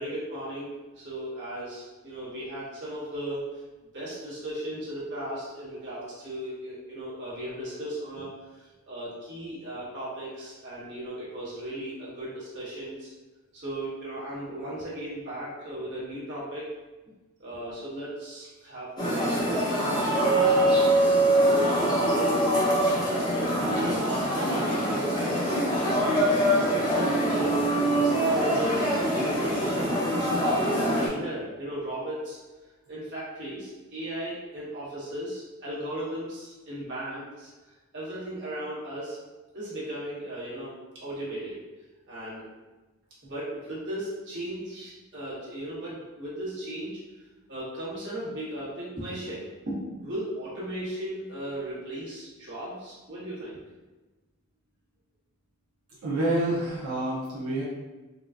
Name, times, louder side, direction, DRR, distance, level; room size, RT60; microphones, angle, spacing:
voice 1, 0.0-3.5 3.9-13.1 13.5-16.7 17.4-20.8 21.4-22.5 23.4-27.7 28.0-32.4 32.9-37.5 37.9-39.2 39.5-41.6 42.1-42.5 43.2-47.0 47.5-53.6, right 1 dB, 50° right, -8 dB, 1.3 m, -36 dB
sound 1, 19.0-31.1, right 1 dB, 20° left, 0.8 m, -24 dB
voice 2, 56.0-57.6, right 1 dB, 75° right, -8 dB, 0.7 m, -27 dB
3.9 x 2.2 x 2.4 m, 1.2 s
head